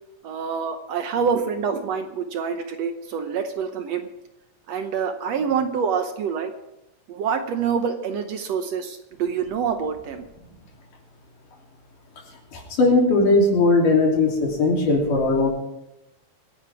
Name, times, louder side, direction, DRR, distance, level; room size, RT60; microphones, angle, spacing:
voice 1, 0.2-4.1 4.7-6.5 7.1-10.2, right 6 dB, 65° right, 7 dB, 1.8 m, -26 dB
voice 2, 12.5-15.5, left 3 dB, 85° left, -1 dB, 4.8 m, -19 dB
25.0 x 11.0 x 3.5 m, 0.92 s
omnidirectional pair, 3.7 m